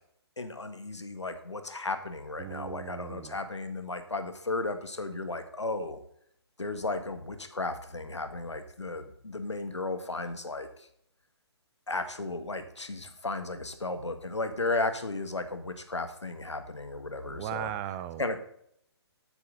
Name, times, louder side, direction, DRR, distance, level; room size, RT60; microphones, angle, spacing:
voice 1, 0.4-6.0 6.6-10.7 11.9-17.7 18.2-18.4, left 2 dB, 90° left, 9 dB, 1.7 m, -34 dB
voice 2, 2.4-3.4 17.2-18.3, right 11 dB, 30° right, 14 dB, 0.7 m, -38 dB
13.0 x 8.2 x 4.0 m, 0.69 s
figure-of-eight pair, 135°, 14 cm